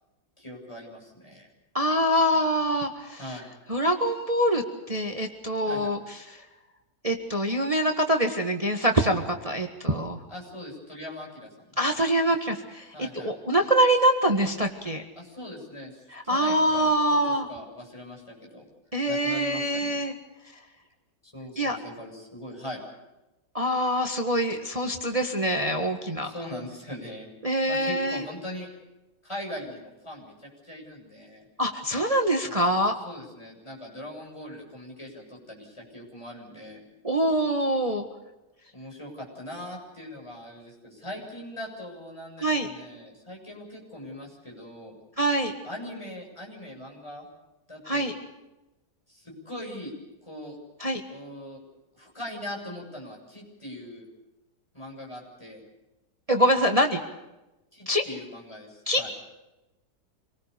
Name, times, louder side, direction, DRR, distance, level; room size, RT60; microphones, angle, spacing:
voice 1, 0.4-1.5 3.2-3.5 5.6-5.9 10.3-11.8 12.9-13.3 15.2-18.7 19.1-20.0 21.2-22.8 26.2-27.3 27.7-28.7 29.2-31.5 32.4-32.7 33.0-36.8 38.7-44.9 45.6-47.3 47.7-48.1 49.1-49.9 50.2-50.6 51.1-51.6 51.9-54.0 54.7-55.6 57.7-59.1, left 1 dB, 15° left, -1 dB, 7.7 m, -41 dB
voice 2, 1.7-3.2 3.7-6.0 7.0-10.2 11.8-12.9 13.2-15.0 16.1-17.5 18.9-20.1 21.6-21.8 23.5-26.3 27.4-28.2 31.6-32.9 37.0-38.0 42.4-42.7 45.2-45.5 47.9-48.1 50.8-51.0 56.3-57.0 57.9-58.0 58.9-59.0, right 1 dB, 20° right, 4 dB, 1.6 m, -24 dB
27.0 x 19.5 x 6.9 m, 1.0 s
omnidirectional pair, 1.8 m